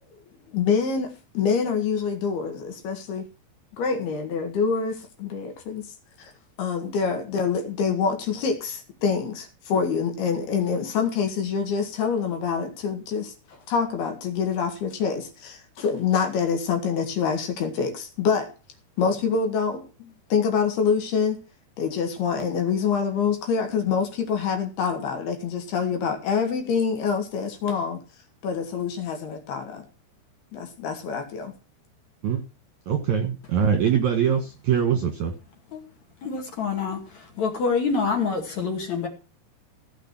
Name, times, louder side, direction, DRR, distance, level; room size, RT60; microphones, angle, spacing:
voice 1, 0.5-3.3 3.8-5.9 6.2-6.3 6.6-13.3 13.7-18.5 19.0-21.4 21.8-28.0 28.4-29.9 30.5-31.5, left 6 dB, 65° left, 5 dB, 3.6 m, -26 dB
voice 2, 32.9-35.3, right 8 dB, 55° right, 5 dB, 2.2 m, -23 dB
voice 3, 36.2-39.1, left 5 dB, 45° left, 3 dB, 3.1 m, -26 dB
16.0 x 6.9 x 6.0 m, 0.34 s
omnidirectional pair, 5.4 m